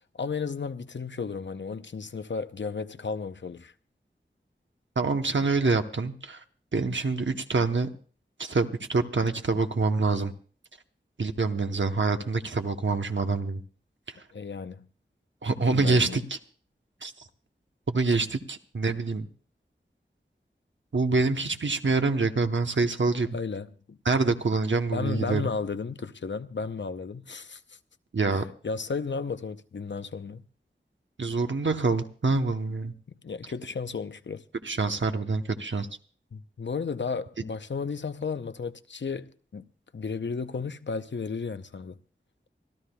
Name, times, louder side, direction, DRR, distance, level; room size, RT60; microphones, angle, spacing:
voice 1, 0.1-3.7 14.3-14.8 15.7-16.3 23.3-24.0 24.9-27.8 28.3-30.4 33.1-34.4 36.3-39.7 39.9-42.0, left 5 dB, 70° left, 0.6 m, -34 dB
voice 2, 5.0-6.4 6.7-7.9 8.4-10.3 11.2-13.6 14.1-14.2 15.4-16.4 17.0-17.1 17.9-19.3 20.9-23.4 24.0-25.4 28.1-28.4 31.2-32.9 34.6-35.9, right 3 dB, 75° right, 0.9 m, -26 dB
25.5 x 13.0 x 2.3 m
wide cardioid pair, 50°, 19 cm